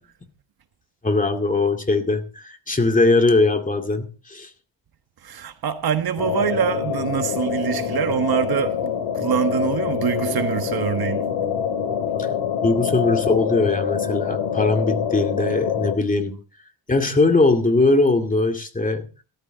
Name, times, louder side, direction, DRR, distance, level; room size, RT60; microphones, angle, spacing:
voice 1, 1.0-4.5 12.6-16.4 16.9-19.1, left 3 dB, 15° left, 2.4 m, -20 dB
voice 2, 5.2-11.3, right 8 dB, 50° right, 1.3 m, -24 dB
sound 1, 6.2-16.0, left 8 dB, 70° left, 2.5 m, -25 dB
15.5 x 14.0 x 3.9 m
cardioid pair, 130°, 46 cm